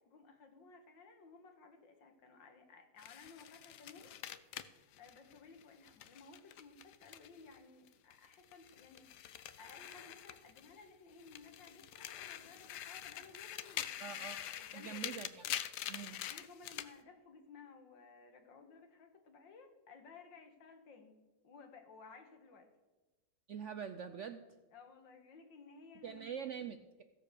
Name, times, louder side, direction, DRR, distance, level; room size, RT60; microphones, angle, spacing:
voice 1, 0.0-4.6 5.0-15.1 16.3-21.2 21.4-22.7 24.7-26.2, left 4 dB, 90° left, 6 dB, 2.3 m, -58 dB
sound 1, 3.0-7.6 7.9-10.8 11.2-16.9, left 11 dB, 70° left, 1.2 m, -45 dB
voice 2, 14.0-14.4 14.7-15.5 15.9-16.2 23.5-24.5 26.0-27.0, right 7 dB, 70° right, 9 dB, 0.7 m, -44 dB
15.0 x 7.6 x 6.7 m, 1.2 s
omnidirectional pair, 1.9 m